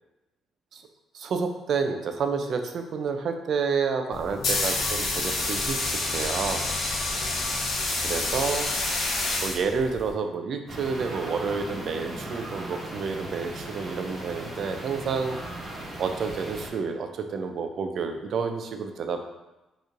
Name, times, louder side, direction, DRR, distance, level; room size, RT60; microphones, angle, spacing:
voice 1, 1.1-6.6 8.0-8.7 9.4-15.4 16.0-19.2, right 5 dB, 60° right, 6 dB, 0.4 m, -29 dB
sound 1, 4.1-10.1, left 2 dB, 70° left, 0.8 m, -28 dB
sound 2, 10.7-16.7, right 1 dB, 30° right, 1.4 m, -37 dB
4.3 x 3.1 x 2.5 m, 1.0 s
cardioid pair, 90°, 0 cm